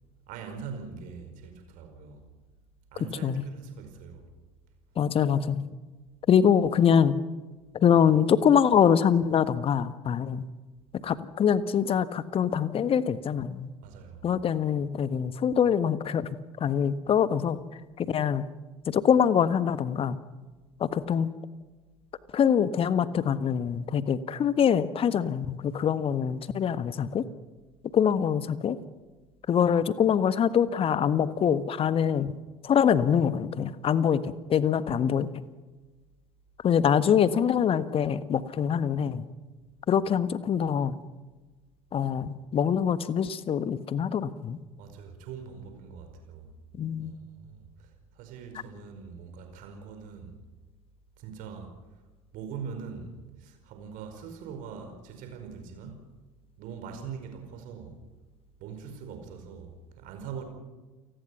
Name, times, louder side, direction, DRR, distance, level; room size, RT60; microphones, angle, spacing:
voice 1, 0.3-2.3 2.9-4.2 13.8-14.3 44.8-46.5 47.0-50.4 51.2-51.8 52.3-56.2 56.6-58.0 58.6-60.4, right 6 dB, 50° right, 6 dB, 5.0 m, -42 dB
voice 2, 5.0-5.6 6.3-7.2 7.7-10.4 11.0-13.7 14.2-16.3 16.6-17.6 18.0-18.5 18.8-20.2 20.8-21.3 22.3-27.3 27.9-28.8 29.5-32.4 32.6-35.3 36.6-39.3 39.9-40.9 41.9-44.6 46.7-47.1, left 8 dB, 35° left, 14 dB, 1.4 m, -24 dB
29.0 x 19.5 x 5.9 m, 1.2 s
figure-of-eight pair, 65°, 17 cm